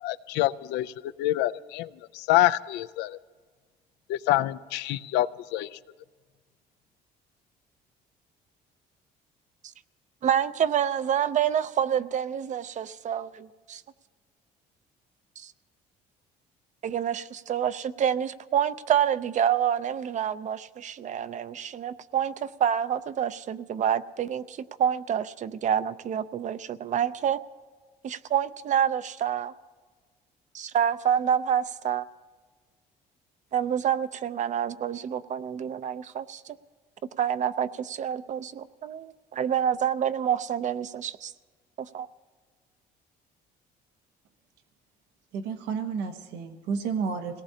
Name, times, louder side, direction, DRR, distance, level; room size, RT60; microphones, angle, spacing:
voice 1, 0.0-1.9 2.1-3.2 4.1-5.7, left 15 dB, 90° left, 14 dB, 0.5 m, -26 dB
voice 2, 10.2-13.8 15.4-15.5 16.8-27.4 28.0-29.5 30.5-32.0 33.5-36.6 37.2-41.3 41.8-42.1, right 9 dB, 45° right, 13 dB, 0.6 m, -27 dB
voice 3, 45.3-47.4, right 5 dB, 90° right, 6 dB, 1.1 m, -31 dB
26.5 x 18.0 x 2.8 m, 1.5 s
cardioid pair, 110°, 17 cm